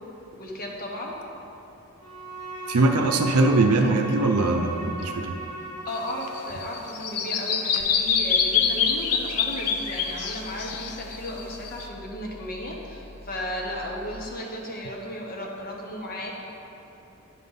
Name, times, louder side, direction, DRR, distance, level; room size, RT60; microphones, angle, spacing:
voice 1, 0.4-1.2 5.8-16.3, equal, 40° left, -1 dB, 1.1 m, -34 dB
Bowed string instrument, 2.0-6.8, right 1 dB, 65° left, 1.8 m, -37 dB
voice 2, 2.7-5.4, right 2 dB, 85° right, 4 dB, 0.6 m, -21 dB
Bird vocalization bird call bird song, 5.9-11.8, left 7 dB, 90° left, 0.6 m, -25 dB
sound 1, 7.8-14.2, left 1 dB, 30° right, 0.6 m, -46 dB
10.0 x 3.8 x 5.5 m, 3.0 s
head